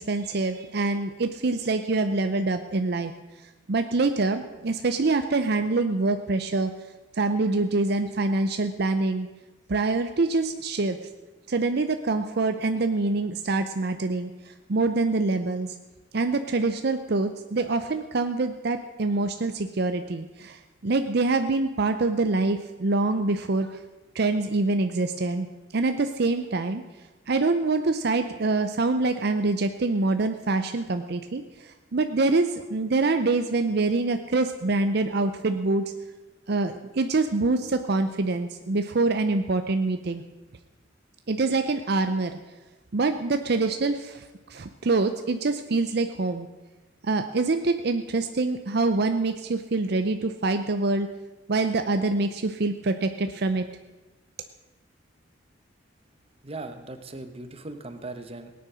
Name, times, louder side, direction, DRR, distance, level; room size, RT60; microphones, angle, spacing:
voice 1, 0.0-3.1 3.4-6.7 7.1-9.3 9.7-11.0 11.5-15.8 16.1-23.8 24.1-25.5 25.7-26.8 27.3-35.9 36.5-40.2 41.3-42.4 42.9-46.5 47.0-51.1 51.5-53.6, right 3 dB, 55° right, 8 dB, 0.6 m, -25 dB
voice 2, 56.4-58.5, right 2 dB, 30° right, 8 dB, 1.1 m, -38 dB
18.0 x 9.5 x 6.3 m, 1.2 s
head